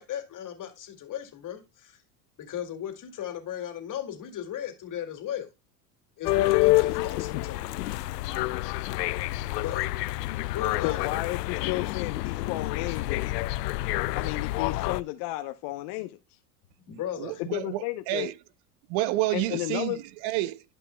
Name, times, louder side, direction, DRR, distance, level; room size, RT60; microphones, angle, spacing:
voice 1, 0.0-2.0 2.4-5.5 6.2-7.7 9.6-9.8 10.5-11.1 16.9-17.4, left 10 dB, 40° left, 2.4 m, -36 dB
sound 1, 6.2-15.0, left 18 dB, 85° left, 0.5 m, -28 dB
voice 2, 10.8-13.3 14.2-16.2 17.5-18.3 19.3-20.0, left 18 dB, 55° left, 0.9 m, -33 dB
voice 3, 17.2-18.3 18.9-20.6, right 16 dB, 55° right, 0.6 m, -29 dB
12.0 x 5.4 x 2.2 m
hypercardioid pair, 90°, 48 cm